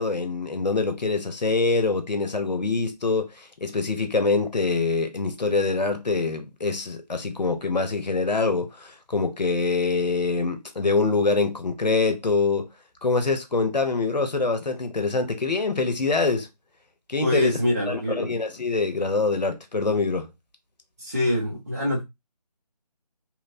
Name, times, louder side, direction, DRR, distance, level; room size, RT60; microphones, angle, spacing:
voice 1, 0.0-12.7 13.0-16.5 17.1-17.6 17.9-20.3, left 3 dB, 85° left, 0.7 m, -24 dB
voice 2, 17.2-18.3 21.0-22.0, left 1 dB, 25° right, 0.5 m, -24 dB
2.9 x 2.0 x 2.4 m
figure-of-eight pair, 160°, 21 cm